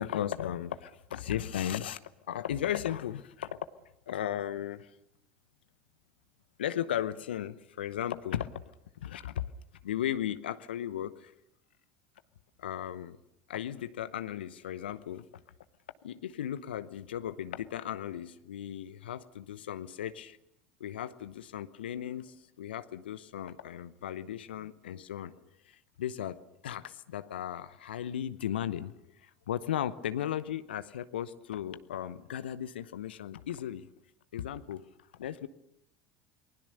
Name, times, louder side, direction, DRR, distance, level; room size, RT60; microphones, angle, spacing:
voice 1, 0.0-2.0 2.3-3.7 4.1-5.0 6.6-8.6 9.0-9.4 9.8-11.3 12.6-13.2 13.5-15.3 16.0-20.4 20.8-25.3 25.6-33.9 34.3-34.8 35.1-35.5, left 10 dB, 75° left, 13 dB, 0.9 m, -36 dB
29.0 x 20.0 x 6.7 m, 0.78 s
figure-of-eight pair, 75°, 5 cm